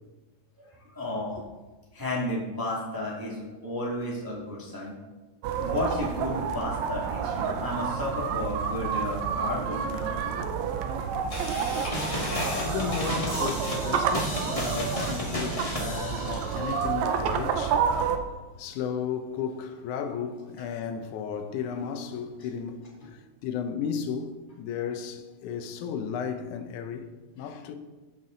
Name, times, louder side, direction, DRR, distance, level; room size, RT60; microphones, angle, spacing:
voice 1, 0.6-1.4 1.9-4.9 5.6-10.2 23.0-23.1, left 1 dB, 10° right, 1.2 m, -32 dB
sound 1, 5.4-18.2, right 6 dB, 75° right, 1.9 m, -29 dB
Camera, 9.1-9.2 10.1-10.2 10.6-14.1, left 1 dB, 35° left, 3.5 m, -35 dB
voice 2, 11.5-27.1 27.4-27.7, left 7 dB, 85° left, 2.2 m, -34 dB
sound 2, 11.9-16.8, left 1 dB, 20° left, 1.0 m, -33 dB
14.5 x 5.8 x 3.8 m
omnidirectional pair, 3.5 m